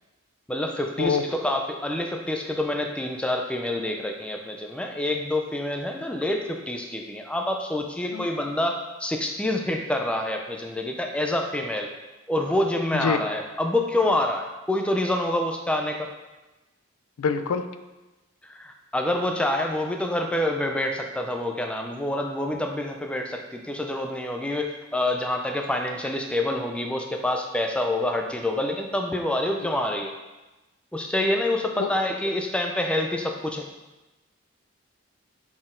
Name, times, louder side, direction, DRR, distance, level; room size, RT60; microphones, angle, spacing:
voice 1, 0.5-11.9 12.3-16.1 18.4-30.1 30.9-33.7, left 1 dB, 5° left, 3 dB, 0.4 m, -27 dB
voice 2, 12.9-13.2 17.2-17.7 31.8-31.9, left 5 dB, 85° left, 9 dB, 0.4 m, -25 dB
5.9 x 4.2 x 3.7 m, 1.1 s
head